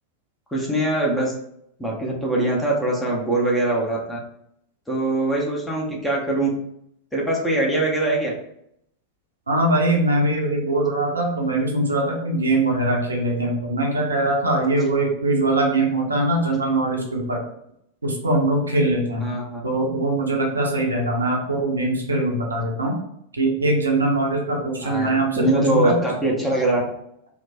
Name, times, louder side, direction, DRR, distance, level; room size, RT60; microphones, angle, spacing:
voice 1, 0.5-1.3 1.8-4.2 4.9-6.5 7.1-8.3 19.2-19.6 24.8-26.8, right 2 dB, 5° left, -3 dB, 0.8 m, -22 dB
voice 2, 9.5-17.4 18.0-19.3 19.6-23.0 23.3-26.0, right 2 dB, 75° right, 0 dB, 0.6 m, -22 dB
3.1 x 2.1 x 2.6 m, 0.73 s
figure-of-eight pair, 90°, 0 cm